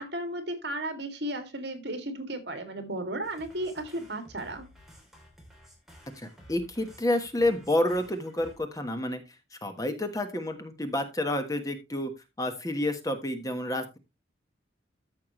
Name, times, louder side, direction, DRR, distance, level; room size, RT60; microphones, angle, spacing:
voice 1, 0.0-4.7, right 1 dB, 65° right, 7 dB, 2.3 m, -34 dB
sound 1, 3.2-8.6, equal, ahead, 3.1 m, -54 dB
voice 2, 6.1-9.2 9.5-12.1 12.4-14.0, left 1 dB, 20° left, 7 dB, 1.3 m, -29 dB
13.5 x 5.9 x 3.1 m, 0.24 s
head